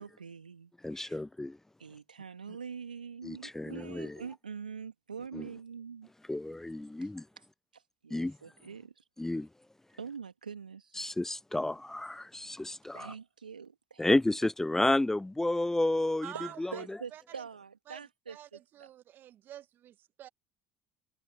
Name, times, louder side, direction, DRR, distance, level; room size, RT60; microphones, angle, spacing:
voice 1, 0.0-1.2 1.8-6.1 7.0-7.1 7.4-7.5 7.7-9.0 10.0-11.0 12.9-14.1 16.3-18.6, right 6 dB, 90° right, 2.6 m, -44 dB
voice 2, 0.8-1.6 3.2-4.2 5.3-5.4 6.3-7.2 8.1-8.4 9.2-9.5 11.0-13.1 14.0-16.3 16.6-16.7, left 2 dB, 10° left, 0.5 m, -31 dB
voice 3, 16.2-16.8 17.1-17.4 17.9-20.3, right 12 dB, 50° right, 1.2 m, -48 dB
figure-of-eight pair, 60°, 4 cm